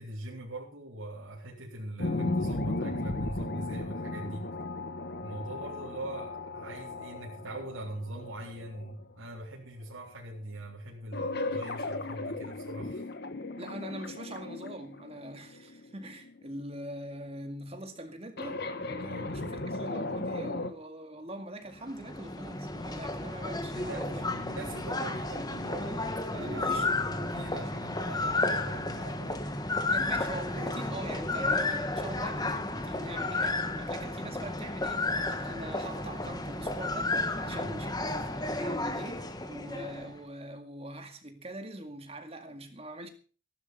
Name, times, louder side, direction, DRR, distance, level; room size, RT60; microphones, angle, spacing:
voice 1, 0.0-4.5 5.2-13.1 19.0-19.4 23.7-29.5 37.4-37.8, right 1 dB, 70° right, 4.0 m, -42 dB
sound 1, 2.0-9.4 11.1-16.6 18.4-20.7, left 2 dB, 50° left, 1.6 m, -36 dB
voice 2, 13.6-24.3 26.3-26.9 29.9-43.1, right 1 dB, 30° right, 2.1 m, -43 dB
sound 2, 21.8-40.2, left 2 dB, 20° left, 1.3 m, -32 dB
15.5 x 12.0 x 5.4 m
head